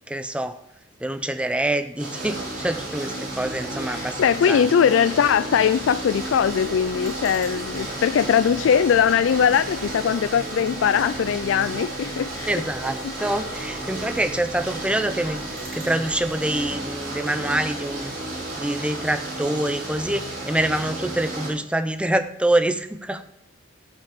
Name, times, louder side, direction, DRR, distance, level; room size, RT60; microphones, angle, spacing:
voice 1, 0.1-0.6 1.0-4.7 12.5-18.1 18.6-23.2, right 1 dB, 5° right, 0.6 m, -26 dB
sound 1, 2.0-21.5, right 2 dB, 45° right, 4.6 m, -32 dB
voice 2, 3.8-12.5 13.0-13.1, left 7 dB, 75° left, 0.3 m, -21 dB
sound 2, 6.2-16.7, right 1 dB, 70° right, 5.4 m, -44 dB
16.5 x 5.9 x 5.1 m
head